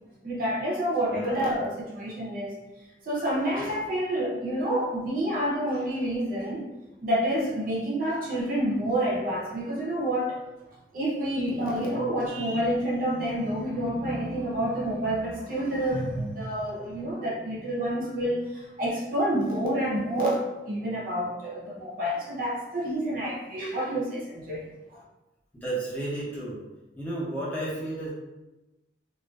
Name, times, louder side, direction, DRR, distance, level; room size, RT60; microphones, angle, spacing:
voice 1, 0.2-2.5 3.0-6.6 7.0-10.4 10.9-24.6 24.9-25.0, right 1 dB, 50° right, -4 dB, 0.5 m, -28 dB
voice 2, 25.5-26.6 27.0-28.1, right 2 dB, 10° left, -8 dB, 0.6 m, -32 dB
2.4 x 2.2 x 2.2 m, 1.0 s
head